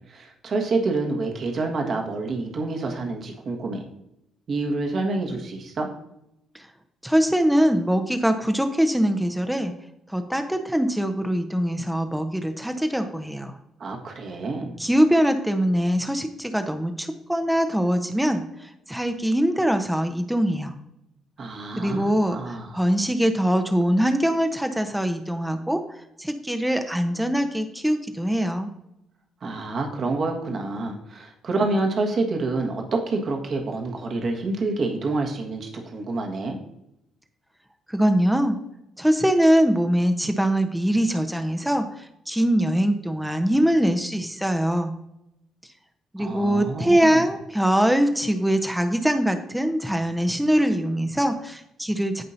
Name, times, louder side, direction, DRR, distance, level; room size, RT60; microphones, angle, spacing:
voice 1, 0.1-3.8 4.5-5.9 13.8-14.8 21.4-22.9 29.4-36.5 46.2-47.2, right 3 dB, 45° right, 2 dB, 1.6 m, -28 dB
voice 2, 7.0-9.7 10.1-13.6 14.8-18.4 18.9-20.7 21.8-25.8 26.2-28.7 37.9-38.6 39.0-41.8 42.3-44.9 46.1-52.2, equal, 5° right, 6 dB, 0.9 m, -22 dB
16.0 x 5.3 x 2.7 m, 0.83 s
figure-of-eight pair, 45°, 0 cm